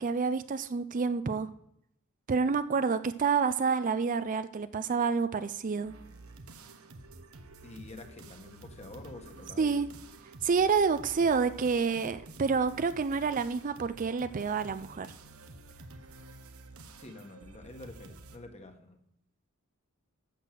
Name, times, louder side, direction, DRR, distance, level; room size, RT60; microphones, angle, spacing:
voice 1, 0.0-1.5 2.3-5.9 9.6-9.9 10.4-15.1, right 5 dB, 40° right, 12 dB, 0.4 m, -28 dB
sound 1, 5.8-18.4, right 2 dB, 80° right, 1.1 m, -50 dB
voice 2, 7.6-9.8 17.0-19.0, left 2 dB, 30° left, 5 dB, 1.6 m, -48 dB
12.0 x 6.5 x 7.6 m, 0.75 s
head